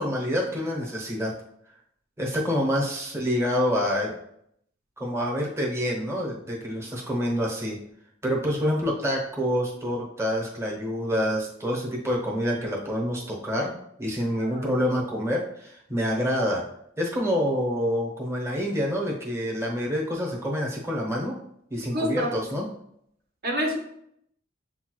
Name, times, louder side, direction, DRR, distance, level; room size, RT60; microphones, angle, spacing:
voice 1, 0.0-1.3 2.2-4.1 5.0-7.8 8.2-13.7 14.0-16.6 17.0-21.3 21.7-22.6, equal, 15° right, -3 dB, 0.8 m, -27 dB
voice 2, 14.4-14.7 21.9-22.3 23.4-23.8, equal, 50° right, 1 dB, 0.8 m, -28 dB
6.7 x 2.3 x 3.0 m, 0.71 s
head